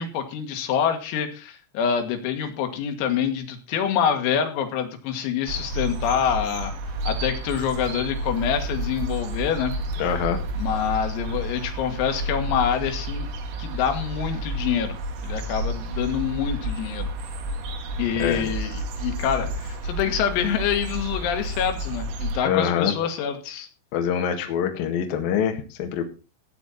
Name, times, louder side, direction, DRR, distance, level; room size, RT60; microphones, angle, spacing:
voice 1, 0.0-6.7 7.1-9.7 10.6-13.3 13.6-15.0 15.2-17.1 18.0-23.7, left 8 dB, 85° left, 5 dB, 4.5 m, -26 dB
sound 1, 5.5-22.4, right 1 dB, 85° right, 4.8 m, -31 dB
voice 2, 10.0-10.4 18.2-18.5 22.4-22.9 23.9-26.0, left 8 dB, 55° left, 4 dB, 3.0 m, -24 dB
17.0 x 8.7 x 4.3 m, 0.32 s
omnidirectional pair, 6.0 m